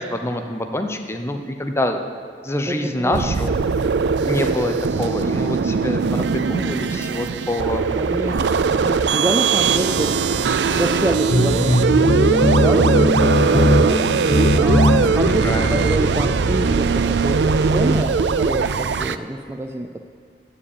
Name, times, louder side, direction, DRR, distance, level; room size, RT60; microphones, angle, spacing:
voice 1, 0.0-2.0 2.4-3.5 4.2-7.9 15.2-15.9, left 1 dB, 15° left, 6 dB, 0.8 m, -26 dB
voice 2, 2.7-3.6 4.1-4.7 7.9-10.2 10.8-20.0, right 1 dB, 15° right, 4 dB, 0.4 m, -28 dB
sound 1, 3.1-19.2, right 5 dB, 75° right, 0.4 m, -20 dB
sound 2, 11.3-15.3, left 1 dB, 50° left, 1.3 m, -18 dB
13.5 x 5.2 x 8.8 m, 2.2 s
head